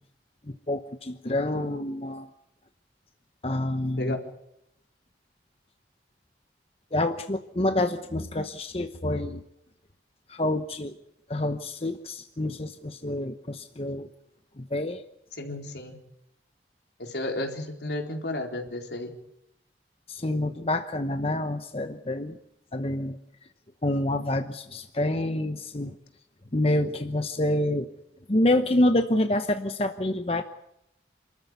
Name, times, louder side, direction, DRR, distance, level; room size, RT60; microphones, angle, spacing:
voice 1, 0.5-2.3 3.4-4.2 6.9-9.4 10.3-10.9 11.3-14.1 14.6-15.0 20.1-22.4 22.7-23.2 23.8-25.9 26.5-27.9 28.3-30.4, left 1 dB, 35° left, 8 dB, 0.9 m, -27 dB
voice 2, 1.2-1.7 4.0-4.2 15.4-16.0 17.0-19.1, left 1 dB, 75° left, 3 dB, 4.0 m, -33 dB
28.0 x 14.0 x 9.5 m, 0.81 s
head